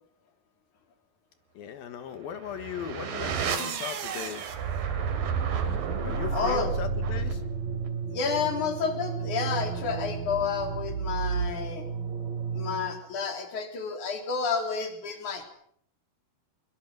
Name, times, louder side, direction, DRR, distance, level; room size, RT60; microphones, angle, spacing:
voice 1, 1.5-4.6 6.0-7.4, left 9 dB, 70° left, 10 dB, 3.2 m, -38 dB
sound 1, 2.3-13.0, right 5 dB, 65° right, 4.0 m, -31 dB
voice 2, 6.3-6.7 8.1-11.8 12.5-15.4, left 5 dB, 50° left, 6 dB, 4.8 m, -30 dB
22.5 x 22.5 x 7.7 m, 0.66 s
omnidirectional pair, 4.5 m